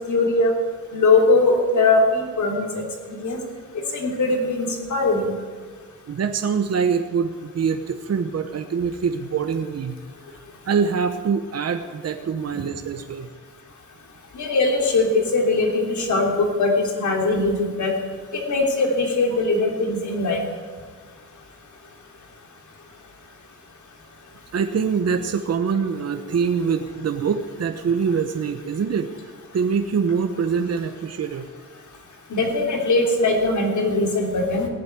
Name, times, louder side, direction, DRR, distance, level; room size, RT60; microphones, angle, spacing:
voice 1, 0.1-0.5 0.9-2.7 3.1-3.4 3.9-5.3 14.3-17.9 18.5-20.4 32.3-34.7, left 3 dB, 65° left, 1 dB, 3.3 m, -20 dB
voice 2, 6.1-10.0 10.7-13.3 24.5-29.1 29.5-31.5, right 6 dB, 50° right, 7 dB, 1.0 m, -24 dB
17.0 x 8.1 x 9.5 m, 1.5 s
cardioid pair, 100°, 32 cm